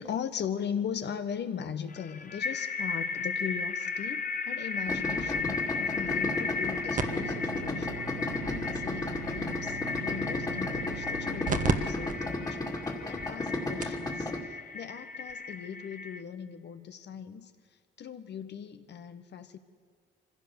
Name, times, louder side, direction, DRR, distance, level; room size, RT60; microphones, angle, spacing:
voice 1, 0.0-8.1 8.4-12.8 13.1-17.5 18.0-19.6, left 8 dB, 60° left, 9 dB, 1.3 m, -39 dB
sound 1, 1.9-16.2, left 4 dB, 45° left, 1.1 m, -35 dB
Idling, 4.9-14.4, left 2 dB, 20° left, 2.3 m, -34 dB
sound 2, 7.0-11.7 12.1-12.2 12.8-12.9 13.5-13.6 13.8-14.1 15.3-15.4, right 5 dB, 40° right, 1.4 m, -35 dB
24.0 x 16.0 x 7.0 m, 2.1 s
cardioid pair, 90°, 20 cm